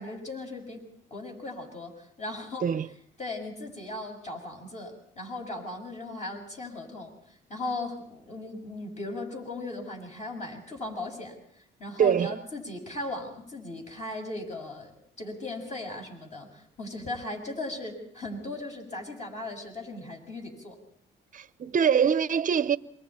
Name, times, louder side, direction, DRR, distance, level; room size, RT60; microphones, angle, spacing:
voice 1, 0.0-2.7 3.2-20.8, left 2 dB, 35° left, 6.9 m, -38 dB
voice 2, 12.0-12.4 21.3-22.8, right 7 dB, 40° right, 0.8 m, -24 dB
27.5 x 23.5 x 4.4 m
cardioid pair, 90°, 20 cm